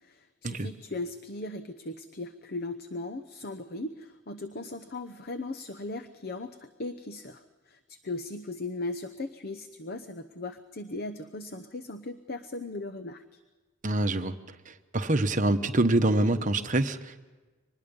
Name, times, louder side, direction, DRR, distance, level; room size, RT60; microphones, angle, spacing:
voice 1, 0.0-13.4, left 2 dB, 45° left, 10 dB, 0.8 m, -38 dB
voice 2, 13.8-14.3 14.7-17.3, right 2 dB, 35° right, 8 dB, 1.0 m, -26 dB
24.5 x 20.5 x 5.4 m, 1.3 s
head